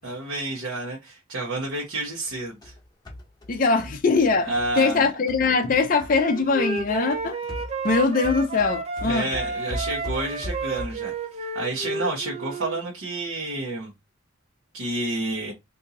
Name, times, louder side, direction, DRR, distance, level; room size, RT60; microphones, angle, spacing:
voice 1, 0.0-2.7 4.5-5.1 9.0-11.1 11.5-13.9 14.7-15.5, right 2 dB, 80° right, 1.0 m, -29 dB
sound 1, 2.2-6.5 6.8-11.1, left 1 dB, 20° left, 0.8 m, -38 dB
voice 2, 3.5-7.4 7.8-9.3, left 4 dB, 40° left, 0.4 m, -22 dB
Wind instrument woodwind instrument, 6.2-9.1 9.3-12.8, right 4 dB, 30° right, 0.4 m, -31 dB
2.8 x 2.6 x 3.6 m
head